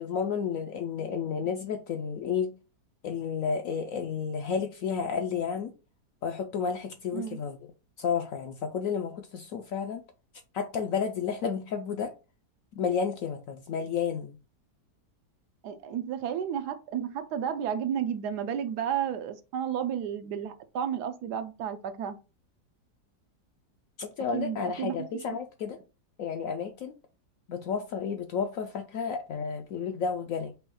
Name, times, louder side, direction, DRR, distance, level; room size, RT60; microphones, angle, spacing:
voice 1, 0.0-2.5 3.0-5.7 6.2-7.6 8.0-10.0 10.5-12.1 12.7-14.4 24.0-25.8 26.2-26.9 27.5-30.5, left 6 dB, 70° left, 0.8 m, -31 dB
voice 2, 15.6-22.2 24.3-25.1, right 8 dB, 75° right, 1.1 m, -32 dB
5.6 x 2.3 x 4.1 m
omnidirectional pair, 1.8 m